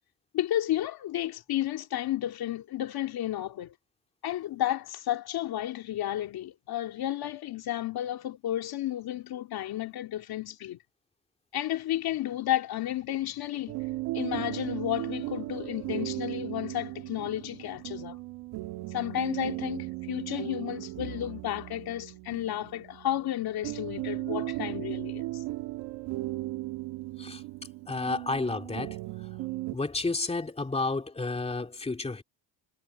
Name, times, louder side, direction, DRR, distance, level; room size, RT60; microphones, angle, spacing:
voice 1, 0.3-3.7 4.2-10.8 11.5-13.8 14.1-18.2 18.9-25.4, left 13 dB, 65° left, 2.4 m, -32 dB
sound 1, 13.7-29.7, right 19 dB, 85° right, 2.3 m, -36 dB
voice 2, 27.9-29.0 29.7-32.2, left 3 dB, 15° left, 2.5 m, -31 dB
cardioid pair, 90°, 40 cm